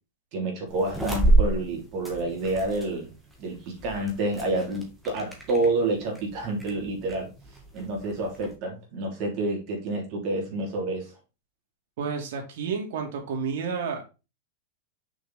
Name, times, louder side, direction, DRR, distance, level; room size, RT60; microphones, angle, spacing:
voice 1, 0.3-3.1 3.4-7.3 7.7-11.1, right 2 dB, 40° right, 0 dB, 3.2 m, -28 dB
sound 1, 0.7-8.5, right 2 dB, 5° right, 1.9 m, -30 dB
voice 2, 12.0-14.1, right 5 dB, 65° right, 2 dB, 2.4 m, -30 dB
6.4 x 5.2 x 4.1 m, 0.29 s
supercardioid pair, 150°, 0 cm